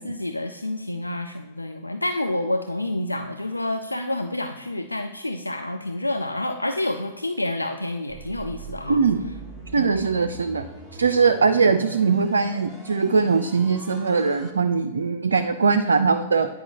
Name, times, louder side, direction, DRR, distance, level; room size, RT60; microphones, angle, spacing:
voice 1, 0.0-9.0 9.8-10.0, left 1 dB, 85° left, 6 dB, 0.3 m, -28 dB
sound 1, 8.1-14.5, right 2 dB, ahead, 1.2 m, -41 dB
voice 2, 8.9-9.2 9.7-10.6 10.9-16.5, right 5 dB, 70° right, 8 dB, 0.3 m, -21 dB
9.3 x 5.2 x 2.9 m, 1.2 s
figure-of-eight pair, 105°, 0 cm